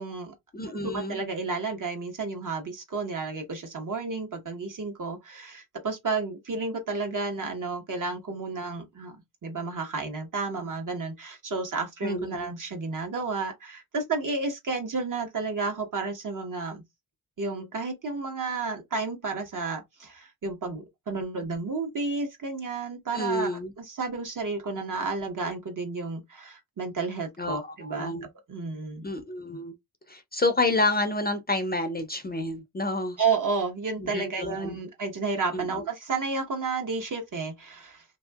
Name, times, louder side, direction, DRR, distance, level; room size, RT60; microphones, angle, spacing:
voice 1, 0.0-0.3 0.7-9.2 9.4-16.8 17.4-28.2 28.5-29.0 33.2-38.0, right 4 dB, 50° right, 1.3 m, -31 dB
voice 2, 0.5-1.2 12.0-12.5 23.1-23.7 27.4-27.6 27.9-28.3 29.0-29.7 30.1-33.2 34.0-34.8 35.5-35.9, left 2 dB, 25° left, 0.6 m, -29 dB
2.7 x 2.6 x 2.3 m
cardioid pair, 90°, 41 cm